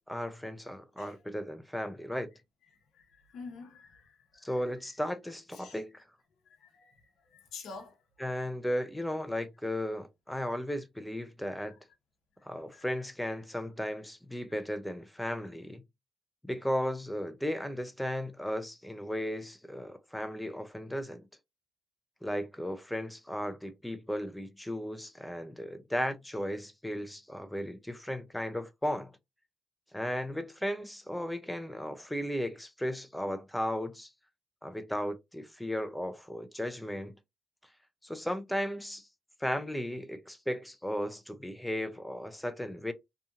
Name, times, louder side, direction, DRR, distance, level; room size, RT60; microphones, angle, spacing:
voice 1, 0.1-2.3 4.4-6.0 8.2-11.7 12.4-15.8 16.4-21.2 22.2-29.1 29.9-34.1 34.6-37.1 38.0-39.1 39.4-42.9, equal, 5° left, 0.5 m, -35 dB
voice 2, 2.9-4.8 5.5-5.8 6.5-8.0 11.6-11.7 12.7-12.8, left 4 dB, 70° left, 0.8 m, -49 dB
2.7 x 2.5 x 2.5 m
cardioid pair, 90°, 0 cm